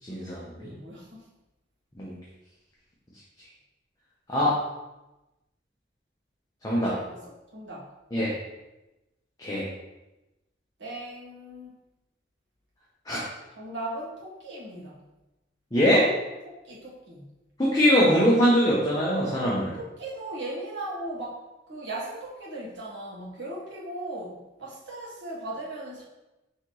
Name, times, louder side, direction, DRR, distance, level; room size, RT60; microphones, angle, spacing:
voice 1, 0.0-0.7 2.0-2.1 4.3-4.6 6.6-7.0 8.1-8.4 9.4-9.7 13.1-13.3 15.7-16.1 17.6-19.8, equal, 20° left, -6 dB, 0.7 m, -22 dB
voice 2, 0.6-1.3 6.7-7.9 10.8-11.8 13.6-15.0 16.4-17.3 19.8-21.4 21.7-26.0, right 1 dB, 80° right, -5 dB, 1.3 m, -38 dB
5.7 x 3.0 x 3.0 m, 1.0 s
head